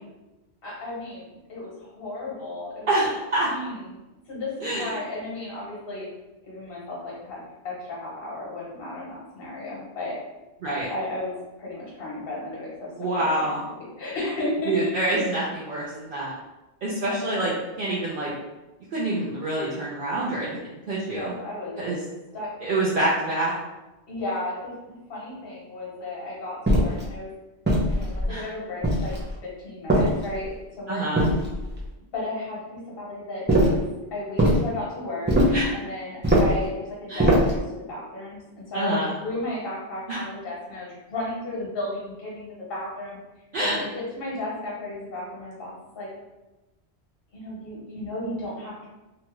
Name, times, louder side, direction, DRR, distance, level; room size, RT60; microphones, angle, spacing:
voice 1, 0.6-2.9 3.5-6.1 6.4-7.4 7.6-10.2 10.9-13.7 14.0-14.9 17.0-17.6 21.1-21.8 22.3-22.5 24.1-27.3 27.9-29.1 29.4-31.0 32.1-33.8 34.1-35.3 35.7-43.2 43.6-46.1 47.3-48.9, left 1 dB, 60° left, -5 dB, 1.2 m, -34 dB
voice 2, 2.9-3.5 4.6-4.9 10.6-10.9 13.0-13.6 14.7-16.4 16.8-17.5 17.8-18.3 18.9-20.6 20.9-21.3 21.8-22.0 22.6-23.5 28.3-28.4 30.9-31.2 35.5-35.7 37.1-37.2 38.7-39.1 40.1-40.2 43.5-43.8, right 2 dB, 60° right, -6 dB, 0.7 m, -26 dB
sound 1, 26.7-27.1 27.7-28.3 28.8-29.3 29.9-30.5 31.2-31.8 33.5-33.9 34.4-34.7 35.3-35.7 36.2-36.6 37.2-37.6, equal, 15° right, 0.3 m, -21 dB
2.9 x 2.3 x 2.9 m, 1.0 s
omnidirectional pair, 1.1 m